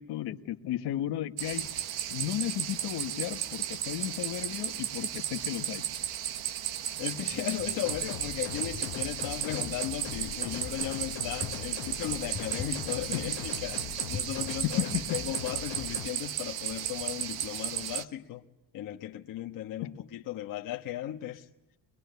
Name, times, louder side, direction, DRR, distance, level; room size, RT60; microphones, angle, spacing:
voice 1, 0.0-1.7 2.1-5.8 12.5-12.6 14.6-14.9, left 13 dB, 65° left, 1.5 m, -34 dB
sound 1, 1.4-18.0, right 11 dB, 60° right, 1.2 m, -35 dB
voice 2, 7.0-18.4 18.7-21.5, left 12 dB, 45° left, 1.2 m, -36 dB
Wind, 7.1-16.0, left 6 dB, 15° left, 1.3 m, -47 dB
sound 2, 7.9-16.1, left 17 dB, 85° left, 0.9 m, -41 dB
23.5 x 22.0 x 9.4 m
cardioid pair, 160°, 43 cm